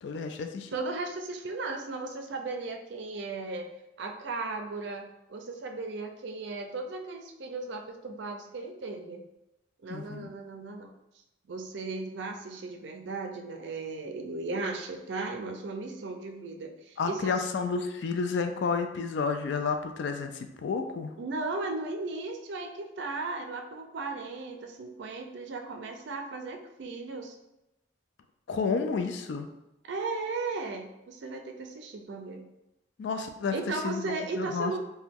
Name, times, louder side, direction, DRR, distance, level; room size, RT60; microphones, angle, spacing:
voice 1, 0.0-0.7 9.9-10.3 17.0-21.1 28.5-29.5 33.0-33.5 33.8-34.8, left 5 dB, 70° left, 6 dB, 0.3 m, -31 dB
voice 2, 0.7-3.7 4.0-9.2 9.8-10.9 11.5-17.4 21.2-27.4 29.8-32.5 33.5-34.8, right 3 dB, 70° right, 4 dB, 0.4 m, -36 dB
2.9 x 2.2 x 3.5 m, 0.91 s
head